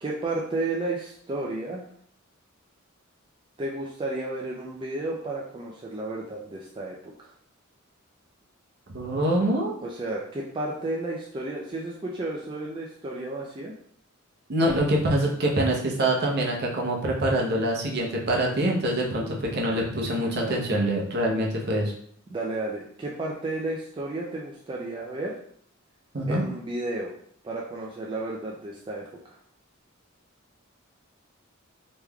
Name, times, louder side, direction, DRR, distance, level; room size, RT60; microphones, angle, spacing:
voice 1, 0.0-1.8 3.6-7.1 9.8-13.7 20.3-20.7 22.3-25.3 26.3-27.1 27.4-29.4, right 2 dB, 25° right, -3 dB, 0.3 m, -32 dB
voice 2, 8.9-9.8 14.5-21.9 26.1-26.4, right 1 dB, 50° right, -1 dB, 0.7 m, -25 dB
3.5 x 3.0 x 2.2 m, 0.64 s
head